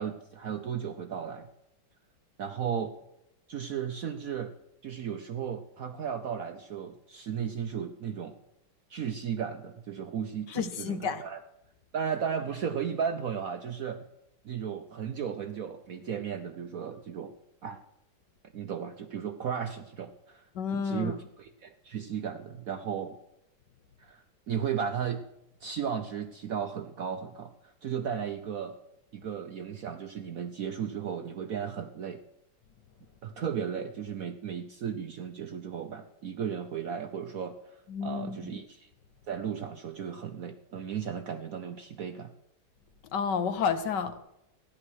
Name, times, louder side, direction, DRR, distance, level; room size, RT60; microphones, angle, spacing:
voice 1, 0.0-1.5 2.4-2.9 3.5-4.5 4.8-8.4 8.9-11.4 11.9-14.1 14.4-17.3 17.6-17.8 18.5-23.2 24.0-25.3 25.6-28.7 29.1-32.2 33.2-38.9 39.3-42.3, right 7 dB, 60° right, 7 dB, 0.9 m, -35 dB
voice 2, 10.5-11.2 20.5-21.2 37.9-38.5 43.1-44.2, left 6 dB, 65° left, 10 dB, 1.4 m, -30 dB
13.5 x 10.0 x 6.3 m, 0.84 s
omnidirectional pair, 2.2 m